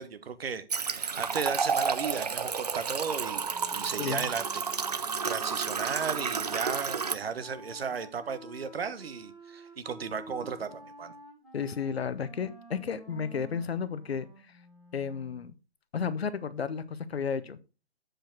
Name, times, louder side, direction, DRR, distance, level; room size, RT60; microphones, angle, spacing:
voice 1, 0.0-4.6 5.2-11.1, right 6 dB, 60° right, 1.1 m, -35 dB
sound 1, 0.7-7.2, right 5 dB, 40° right, 0.4 m, -31 dB
Wind instrument woodwind instrument, 3.5-15.5, equal, ahead, 1.3 m, -51 dB
voice 2, 11.5-14.3 14.9-15.5 15.9-17.6, left 6 dB, 65° left, 0.9 m, -32 dB
7.8 x 5.0 x 4.5 m
hypercardioid pair, 160°, 34 cm